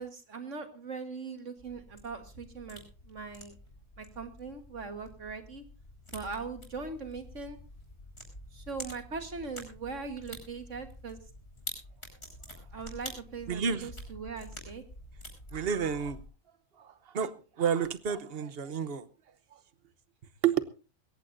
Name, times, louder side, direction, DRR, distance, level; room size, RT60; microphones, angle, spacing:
voice 1, 0.0-3.5 4.0-5.6 6.1-7.6 8.5-11.3 12.7-14.8, right 4 dB, 65° right, 8 dB, 1.9 m, -40 dB
sound 1, 1.6-16.3, equal, 50° left, 8.0 m, -48 dB
voice 2, 13.5-13.9 15.5-16.2 16.8-19.1 19.5-19.6 20.4-20.6, right 7 dB, 50° right, 14 dB, 1.2 m, -30 dB
22.0 x 17.5 x 2.6 m, 0.33 s
omnidirectional pair, 1.3 m